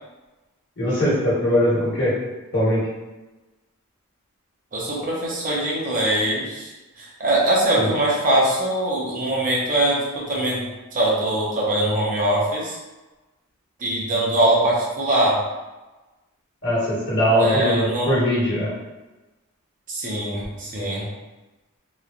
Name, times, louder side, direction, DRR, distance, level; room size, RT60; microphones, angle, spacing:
voice 1, 0.8-2.2 2.5-2.8 7.8-7.9 16.6-18.7, equal, 60° left, -8 dB, 1.2 m, -21 dB
voice 2, 4.7-12.8 13.8-15.4 17.4-18.1 19.9-21.0, right 1 dB, 40° right, -4 dB, 0.6 m, -22 dB
3.0 x 2.1 x 2.4 m, 1.1 s
head